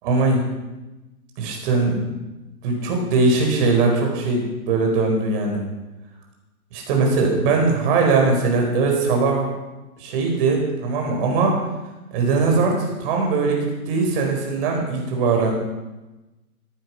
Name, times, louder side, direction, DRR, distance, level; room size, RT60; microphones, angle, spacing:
voice 1, 0.0-0.4 1.4-2.1 2.6-5.6 6.7-9.5 10.0-11.6 12.1-15.5, right 3 dB, 35° right, 1 dB, 4.8 m, -20 dB
14.5 x 11.0 x 5.9 m, 1.1 s
hypercardioid pair, 140°, 45 cm